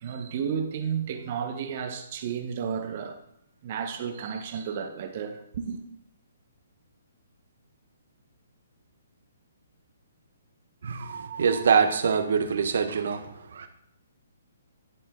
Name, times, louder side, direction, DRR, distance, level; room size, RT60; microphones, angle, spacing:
voice 1, 0.0-3.2 3.6-5.8, right 7 dB, 45° right, 1.1 m, -32 dB
voice 2, 10.8-13.7, right 6 dB, 65° right, 1.0 m, -25 dB
11.0 x 4.3 x 3.8 m
hypercardioid pair, 145°, 0 cm